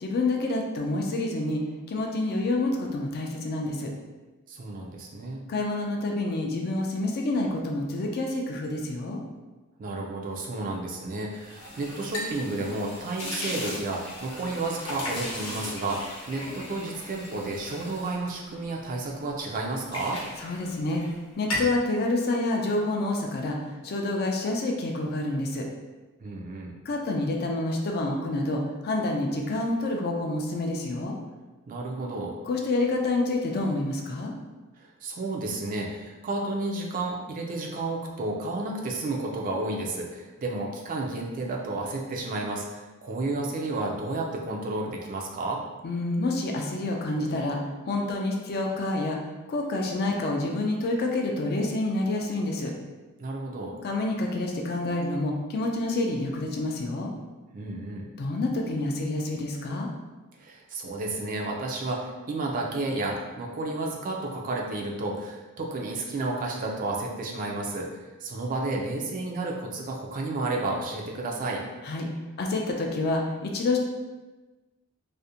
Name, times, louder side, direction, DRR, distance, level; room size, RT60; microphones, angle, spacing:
voice 1, 0.0-1.6 1.9-3.9 5.5-9.2 20.4-21.0 21.4-23.6 23.8-25.6 26.9-31.2 32.4-34.3 45.8-47.6 47.8-49.2 49.5-52.7 53.8-57.1 58.2-59.9 71.8-72.1 72.4-73.8, left 2 dB, 45° left, 1 dB, 0.3 m, -28 dB
voice 2, 4.5-5.4 9.8-20.2 26.2-26.7 31.7-32.3 34.8-45.6 53.2-53.7 57.5-58.1 60.4-67.9 68.2-71.6, right 2 dB, 40° right, -1 dB, 0.3 m, -31 dB
sound 1, 11.3-19.1 19.5-21.1 21.4-21.8, left 1 dB, 75° left, 0.7 m, -37 dB
2.5 x 2.1 x 2.7 m, 1.2 s
head